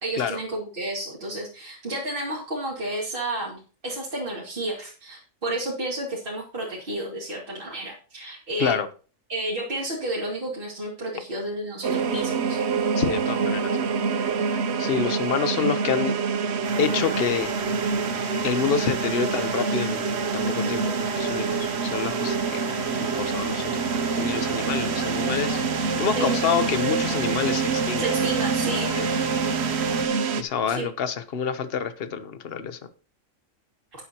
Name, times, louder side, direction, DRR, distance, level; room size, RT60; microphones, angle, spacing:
voice 1, 0.0-8.8 9.3-12.6 20.6-21.0 26.1-26.4 28.0-29.0 30.7-30.9, right 1 dB, 40° right, -5 dB, 2.9 m, -31 dB
sound 1, 11.8-30.4, right 5 dB, 60° right, 1.0 m, -26 dB
voice 2, 12.9-16.1 16.8-17.5 18.4-20.0 20.3-22.7 23.0-28.1 28.9-29.1 30.4-32.8, left 7 dB, 50° left, 11 dB, 1.1 m, -28 dB
sound 2, 16.6-30.1, right 1 dB, 90° right, 2.5 m, -34 dB
12.5 x 9.8 x 3.0 m, 0.37 s
omnidirectional pair, 1.4 m